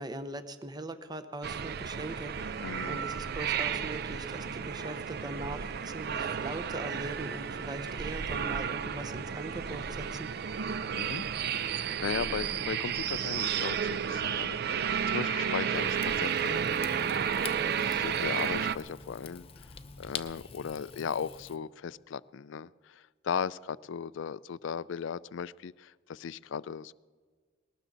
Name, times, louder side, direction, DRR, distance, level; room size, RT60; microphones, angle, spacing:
voice 1, 0.0-2.3 2.9-10.3, right 1 dB, 20° right, 9 dB, 0.7 m, -40 dB
sound 1, 1.4-18.8, right 7 dB, 50° right, 0.5 m, -32 dB
voice 2, 2.6-3.1 10.6-11.2 11.6-16.7 17.0-17.2 17.8-19.5 20.0-26.9, left 7 dB, 70° left, 19 dB, 0.4 m, -37 dB
Rain / Fire, 15.7-21.6, left 6 dB, 30° left, 0.6 m, -46 dB
20.0 x 18.5 x 3.9 m, 1.5 s
head